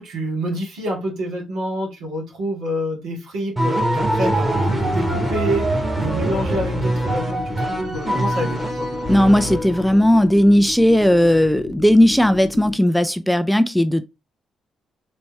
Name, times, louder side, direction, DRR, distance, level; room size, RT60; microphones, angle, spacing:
voice 1, 0.0-8.9, right 1 dB, 70° right, 2.1 m, -27 dB
sound 1, 3.6-10.0, right 1 dB, 20° right, 1.7 m, -23 dB
sound 2, 4.0-12.7, left 5 dB, 50° left, 0.7 m, -34 dB
voice 2, 9.1-14.0, equal, 5° left, 0.4 m, -16 dB
4.1 x 3.4 x 3.2 m
hypercardioid pair, 45°, 0 cm